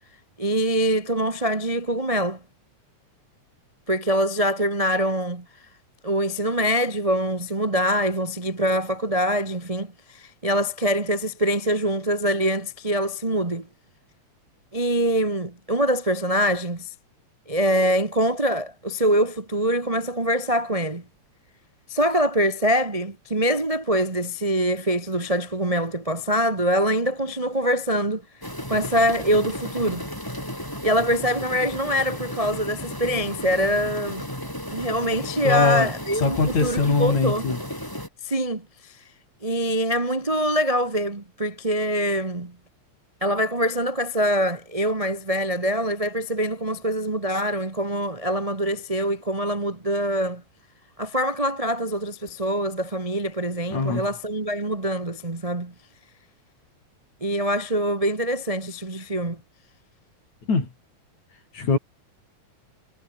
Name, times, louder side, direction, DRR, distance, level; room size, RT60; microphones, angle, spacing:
voice 1, 0.4-2.4 3.9-5.4 6.0-13.7 14.7-16.9 17.5-21.0 21.9-28.2 28.7-30.1 30.8-34.2 34.7-37.4 38.2-38.9 39.4-42.6 43.2-50.4 51.0-55.7 57.2-59.4, equal, 30° right, 0.6 m, -24 dB
sound 1, 28.4-38.1, equal, 5° left, 7.7 m, -34 dB
voice 2, 35.4-35.9 36.2-37.6 53.7-54.1 60.5-60.7 61.5-61.8, left 4 dB, 65° left, 7.5 m, -22 dB
omnidirectional pair, 3.5 m